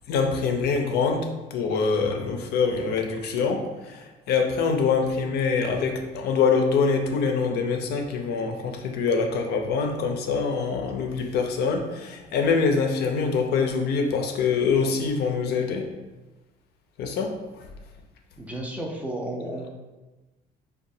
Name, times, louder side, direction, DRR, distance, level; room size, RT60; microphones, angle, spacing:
voice 1, 0.1-15.9 17.0-17.4, left 5 dB, 70° left, 4 dB, 0.5 m, -24 dB
voice 2, 18.4-19.7, right 1 dB, 10° right, -1 dB, 0.5 m, -32 dB
3.8 x 2.3 x 2.6 m, 1.1 s
cardioid pair, 110°, 17 cm